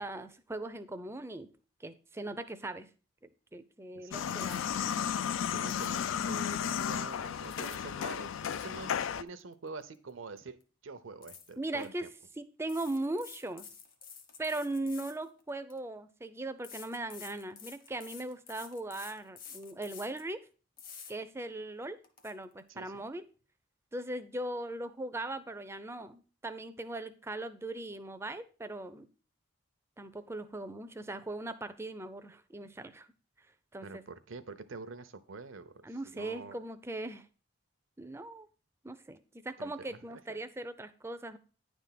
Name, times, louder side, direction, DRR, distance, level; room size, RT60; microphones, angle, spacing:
voice 1, 0.0-1.5 1.8-2.9 3.2-4.7 11.6-12.1 12.4-13.7 14.4-20.4 21.1-22.0 22.2-23.2 23.9-29.1 30.0-33.1 33.7-34.0 35.8-37.3 38.0-38.5 38.8-41.4, right 2 dB, 15° right, 11 dB, 0.4 m, -39 dB
sound 1, 4.1-9.2, left 8 dB, 75° left, 0.3 m, -34 dB
sound 2, 4.3-4.9 5.6-6.2 7.2-7.9 8.2-10.1 10.4-10.6 11.2-11.9 12.6-15.8 16.6-20.3 20.8-21.1 21.6-21.7 22.0-22.3, left 6 dB, 45° left, 1.0 m, -50 dB
voice 2, 5.5-10.6 10.8-12.1 22.7-23.1 33.8-36.6 39.6-40.4, right 4 dB, 75° right, 12 dB, 0.7 m, -46 dB
9.8 x 3.5 x 5.7 m, 0.37 s
head